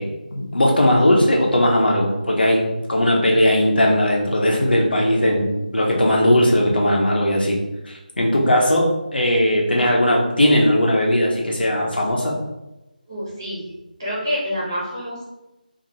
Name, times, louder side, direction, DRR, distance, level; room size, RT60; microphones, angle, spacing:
voice 1, 0.0-7.6 7.9-12.3, left 1 dB, 85° left, -1 dB, 1.1 m, -18 dB
voice 2, 13.1-13.6 14.0-15.3, equal, 25° right, -8 dB, 1.3 m, -27 dB
3.8 x 2.9 x 2.9 m, 0.98 s
figure-of-eight pair, 175°, 5 cm